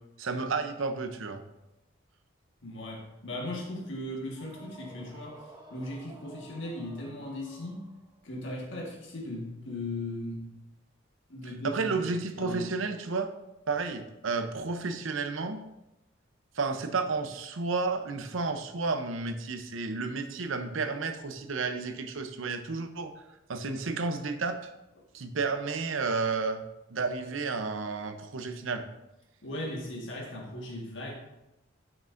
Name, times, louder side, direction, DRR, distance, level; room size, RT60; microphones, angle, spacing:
voice 1, 0.2-1.4 11.6-13.3 13.7-15.6 16.5-23.1 23.5-24.7 25.1-26.6 26.9-28.8, right 4 dB, 75° right, 8 dB, 0.7 m, -31 dB
voice 2, 2.6-7.8 8.2-10.5 11.3-12.1 12.4-12.7 29.4-31.1, left 1 dB, 65° left, -1 dB, 1.6 m, -38 dB
sound 1, 4.3-8.3, right 1 dB, 25° right, 0.7 m, -52 dB
9.3 x 5.9 x 2.6 m, 0.92 s
head